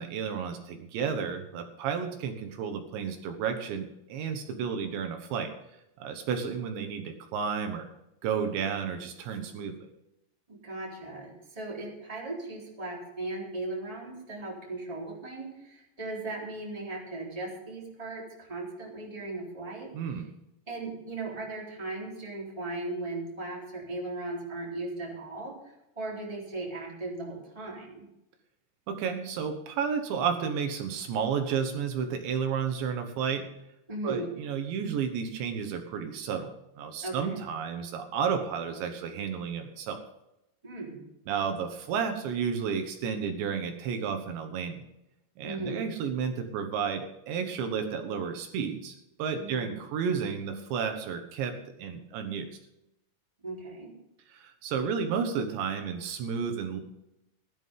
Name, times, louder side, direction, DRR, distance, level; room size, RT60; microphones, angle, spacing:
voice 1, 0.0-5.5 6.0-7.9 8.2-9.8 19.9-20.3 28.9-33.5 34.0-40.0 41.3-44.8 45.4-51.5 51.8-52.5 54.3-56.8, right 6 dB, 75° right, 6 dB, 3.3 m, -32 dB
voice 2, 10.5-19.9 20.7-25.6 25.9-28.0 33.9-34.3 37.0-37.4 40.6-41.0 45.4-45.8 49.4-49.7 53.4-53.9, right 2 dB, 10° right, -3 dB, 3.2 m, -37 dB
18.0 x 11.5 x 3.8 m, 0.88 s
omnidirectional pair, 5.4 m